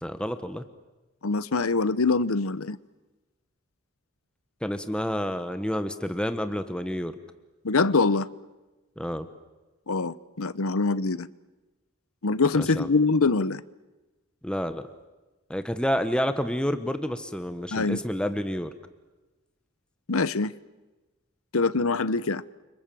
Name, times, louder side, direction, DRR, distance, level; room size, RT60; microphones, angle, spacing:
voice 1, 0.0-0.7 4.6-7.2 9.0-9.3 12.6-12.9 14.4-14.9 15.5-18.7, equal, 5° left, 1.1 m, -29 dB
voice 2, 1.2-2.8 7.6-8.3 9.9-11.3 12.2-13.6 17.7-18.0 20.1-20.5 21.5-22.4, left 3 dB, 80° left, 1.0 m, -24 dB
30.0 x 25.5 x 7.7 m
head